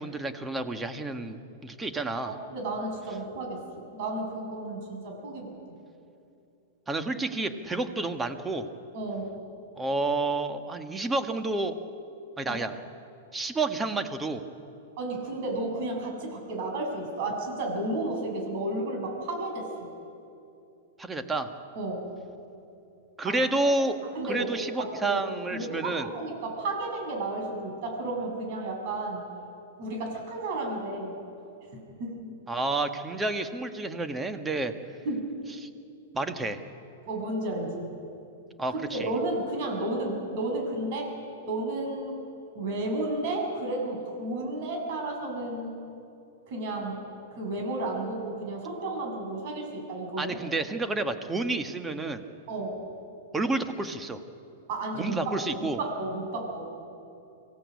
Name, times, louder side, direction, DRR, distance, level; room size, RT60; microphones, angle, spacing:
voice 1, 0.0-2.4 6.9-8.7 9.8-11.8 12.4-12.8 13.3-14.4 21.0-21.5 23.2-24.0 24.3-26.1 32.5-34.7 35.6-35.7 36.1-36.6 38.6-39.1 50.2-52.2 53.3-54.2 55.0-55.8, right 2 dB, 15° right, 7 dB, 1.6 m, -30 dB
voice 2, 2.2-5.5 8.9-9.4 12.4-12.6 15.0-19.9 21.8-22.1 23.2-23.4 24.2-24.5 24.8-25.2 25.5-29.2 29.8-31.2 31.7-32.3 35.0-35.3 37.1-37.9 38.7-41.1 41.5-42.2 42.5-45.7 46.5-50.4 52.5-52.8 54.7-55.1 55.4-56.7, right 2 dB, 55° right, 2 dB, 7.3 m, -32 dB
24.5 x 16.5 x 8.4 m, 2.7 s
hypercardioid pair, 115°, 0 cm